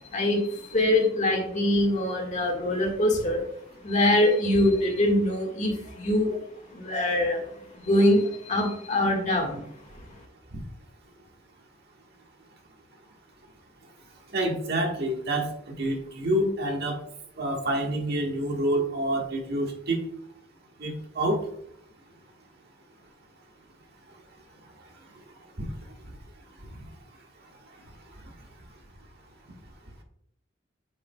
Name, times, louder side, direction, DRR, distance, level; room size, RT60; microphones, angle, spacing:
voice 1, 0.1-3.4 3.8-6.3 6.7-7.4 7.8-9.6, left 1 dB, 40° left, 1 dB, 1.7 m, -23 dB
voice 2, 14.3-15.5 15.8-16.9 17.4-20.0 20.8-21.4, right 1 dB, 60° right, 1 dB, 1.5 m, -27 dB
8.5 x 6.8 x 2.3 m, 0.72 s
head